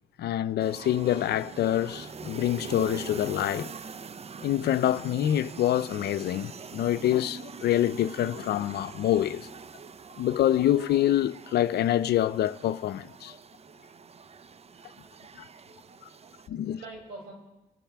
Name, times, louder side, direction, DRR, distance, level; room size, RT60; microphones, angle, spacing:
voice 1, 0.2-3.7 4.4-9.5 10.2-13.3 15.4-15.5 16.5-16.8, left 12 dB, 75° left, 0.6 m, -26 dB
sound 1, 0.6-16.5, right 5 dB, 40° right, 0.6 m, -44 dB
voice 2, 14.3-15.3 15.6-17.3, right 3 dB, 75° right, 6.6 m, -49 dB
28.0 x 13.0 x 3.5 m
supercardioid pair, 60°, 17 cm